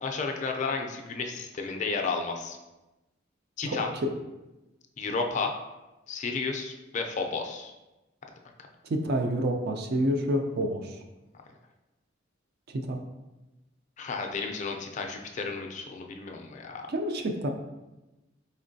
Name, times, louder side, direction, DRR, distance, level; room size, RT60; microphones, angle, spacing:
voice 1, 0.0-2.6 3.6-3.9 5.0-5.6 6.1-7.7 14.0-16.9, left 4 dB, 40° left, 3 dB, 0.4 m, -32 dB
voice 2, 3.6-4.1 8.8-11.0 12.7-13.0 16.9-17.5, equal, 55° right, 4 dB, 0.4 m, -28 dB
4.2 x 3.0 x 2.6 m, 1.0 s
head